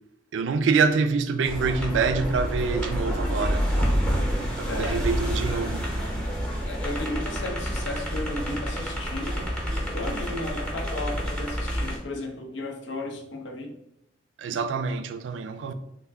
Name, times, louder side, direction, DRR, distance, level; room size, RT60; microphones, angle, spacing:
voice 1, 0.3-3.7 4.6-5.8 14.4-15.7, right 5 dB, 80° right, 0.3 m, -26 dB
sound 1, 1.4-12.0, equal, 5° left, 0.7 m, -28 dB
voice 2, 4.6-5.0 6.6-13.8, left 2 dB, 80° left, 0.7 m, -34 dB
3.3 x 2.2 x 3.4 m
head